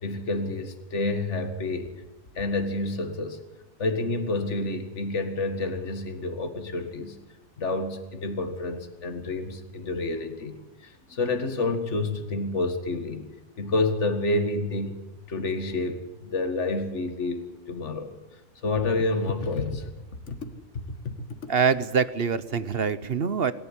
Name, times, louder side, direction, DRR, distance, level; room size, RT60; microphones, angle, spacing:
voice 1, 0.0-1.9 2.4-3.4 3.8-7.2 7.6-13.3 13.6-15.0 15.3-18.1 18.6-19.9 20.3-20.4 21.0-21.1, left 2 dB, 60° left, 7 dB, 2.2 m, -29 dB
voice 2, 21.5-23.5, right 6 dB, 50° right, 15 dB, 1.0 m, -24 dB
25.5 x 12.5 x 9.9 m, 1.1 s
omnidirectional pair, 1.4 m